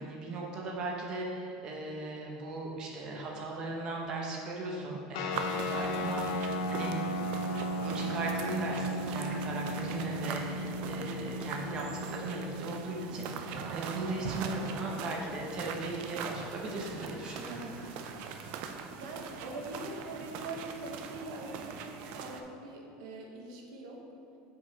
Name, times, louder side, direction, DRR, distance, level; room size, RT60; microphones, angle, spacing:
voice 1, 0.0-6.9 7.7-17.7, right 2 dB, 30° right, -1 dB, 0.7 m, -38 dB
sound 1, 5.1-16.0, equal, 80° left, 0.5 m, -36 dB
sound 2, 5.3-22.4, right 6 dB, 45° right, 0.3 m, -41 dB
Laughter, 16.0-21.2, equal, ahead, 1.1 m, -56 dB
voice 2, 17.5-17.8 18.9-24.1, right 2 dB, 70° right, 1 dB, 0.9 m, -43 dB
5.1 x 4.7 x 3.9 m, 2.7 s
cardioid pair, 175°, 3 cm